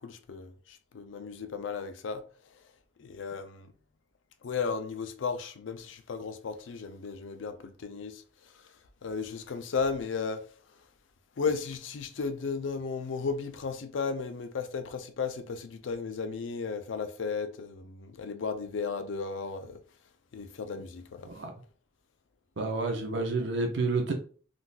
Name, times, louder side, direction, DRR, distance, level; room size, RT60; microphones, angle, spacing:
voice 1, 0.0-2.2 3.0-3.7 4.4-8.7 9.0-10.4 11.4-19.8 20.3-21.3, left 5 dB, 75° left, 0.4 m, -35 dB
voice 2, 22.6-24.1, right 3 dB, 65° right, 0.6 m, -29 dB
3.7 x 2.6 x 2.3 m
head